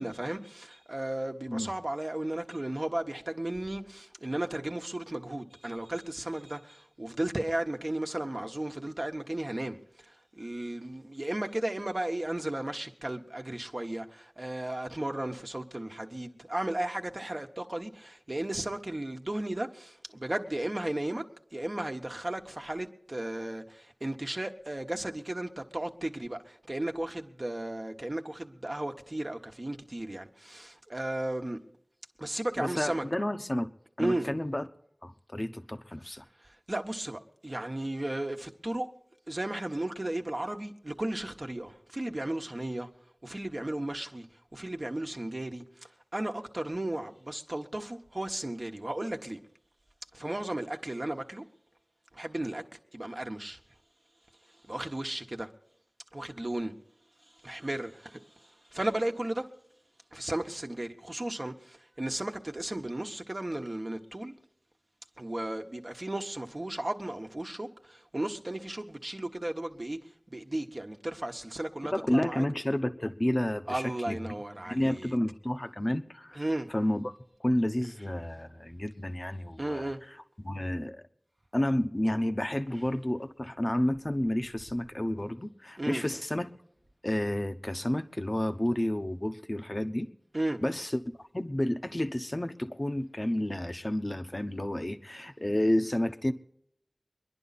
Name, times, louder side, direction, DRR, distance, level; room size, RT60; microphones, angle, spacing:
voice 1, 0.0-21.2 21.5-31.6 32.2-33.0 34.0-34.3 36.4-38.9 39.3-42.9 43.2-44.3 44.5-49.4 50.1-51.4 52.1-52.6 52.9-53.6 54.6-55.5 56.1-56.7 57.4-59.5 60.1-64.3 65.2-72.4 73.7-75.2 76.3-76.7 79.6-80.0 85.8-86.0 90.3-90.6, right 1 dB, 45° right, 1.3 m, -35 dB
voice 2, 32.6-33.7 34.0-34.6 35.0-36.2 71.9-74.3 74.6-76.4 76.7-77.1 77.4-79.9 80.4-81.0 81.5-86.5 87.0-90.1 90.6-91.0 91.3-96.3, left 1 dB, 35° left, 1.0 m, -30 dB
24.0 x 11.0 x 4.2 m
wide cardioid pair, 40°, 0 cm